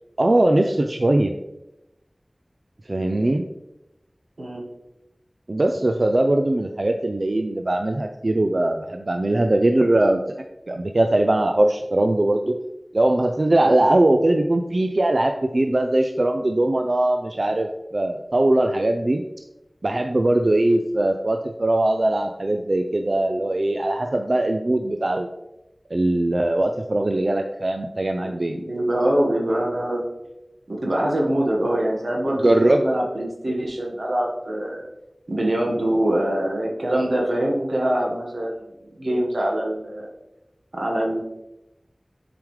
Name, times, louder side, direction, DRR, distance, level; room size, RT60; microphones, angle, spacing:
voice 1, 0.2-1.3 2.9-3.4 5.5-10.2 10.7-12.6 12.9-19.2 19.8-25.3 25.9-28.6 32.4-32.8, right 1 dB, 60° right, 4 dB, 0.4 m, -20 dB
voice 2, 28.2-30.0 30.7-34.8 35.3-40.1 40.7-41.2, right 1 dB, 90° right, -2 dB, 1.5 m, -24 dB
6.9 x 5.0 x 3.2 m, 0.92 s
wide cardioid pair, 40°, 0 cm